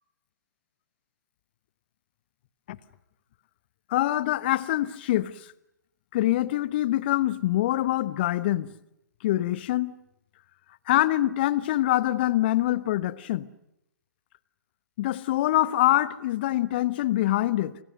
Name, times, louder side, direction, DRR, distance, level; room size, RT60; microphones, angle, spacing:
voice 1, 3.9-5.5 6.1-8.7 9.2-10.0 10.9-13.5 15.0-17.8, left 15 dB, 35° left, 1.1 m, -25 dB
28.5 x 26.5 x 6.5 m
figure-of-eight pair, 125°, 10 cm